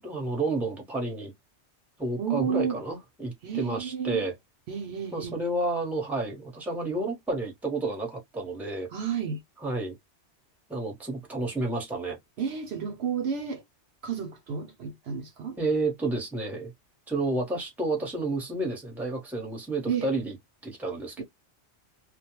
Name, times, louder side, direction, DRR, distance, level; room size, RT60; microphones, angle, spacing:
voice 1, 0.0-1.3 2.0-4.3 5.1-8.9 9.6-9.9 10.7-12.2 15.6-16.7 17.1-20.4 20.6-21.2, right 2 dB, ahead, 0.9 m, -30 dB
voice 2, 2.2-2.8 3.4-4.2 4.7-5.4 8.9-9.4 12.4-13.6 14.0-15.6 19.9-20.1 21.2-21.3, right 7 dB, 65° right, 0.8 m, -31 dB
2.3 x 2.2 x 2.9 m
omnidirectional pair, 1.2 m